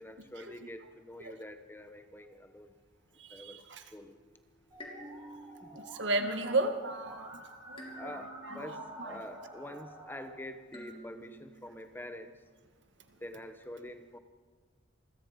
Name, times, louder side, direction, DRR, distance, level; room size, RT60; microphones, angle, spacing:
voice 1, 0.0-2.7 3.3-3.6 3.9-4.1 5.6-5.8 8.0-12.3 13.2-14.2, left 1 dB, 10° left, 8 dB, 1.0 m, -46 dB
voice 2, 3.2-3.9 5.7-9.2 13.1-13.2, right 2 dB, 70° right, 7 dB, 1.8 m, -35 dB
sound 1, 4.3-4.4 4.8-7.2 7.8-9.8 10.7-12.3, right 1 dB, 30° left, 3.5 m, -52 dB
Musical instrument, 4.7-10.3, right 1 dB, 20° right, 5.4 m, -49 dB
28.0 x 22.0 x 5.2 m, 1.5 s
head